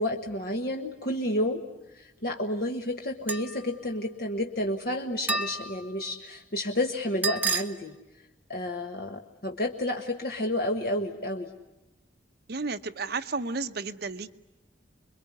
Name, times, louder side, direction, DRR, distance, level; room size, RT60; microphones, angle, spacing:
voice 1, 0.0-1.6 1.9-7.9 8.5-11.5, left 1 dB, 50° left, 3 dB, 1.4 m, -30 dB
sound 1, 3.3-3.6 5.3-5.8 7.2-7.6, right 3 dB, 10° right, 1.2 m, -29 dB
voice 2, 12.5-14.3, right 4 dB, 55° right, 8 dB, 0.9 m, -32 dB
26.5 x 22.5 x 9.6 m, 0.97 s
head